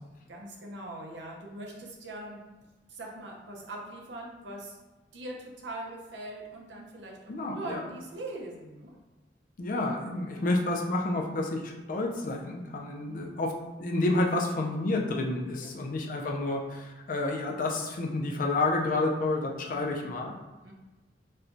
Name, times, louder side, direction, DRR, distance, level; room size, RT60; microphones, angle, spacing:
voice 1, 0.3-2.4 2.9-4.8 5.1-9.0 10.3-10.4 13.1-13.4 15.6-16.0 19.7-19.9 20.6-20.7, right 1 dB, 80° right, 0 dB, 0.7 m, -42 dB
voice 2, 7.3-7.8 9.6-13.5 13.8-20.3, left 2 dB, 50° left, 1 dB, 0.4 m, -29 dB
4.2 x 2.2 x 2.5 m, 1.2 s
head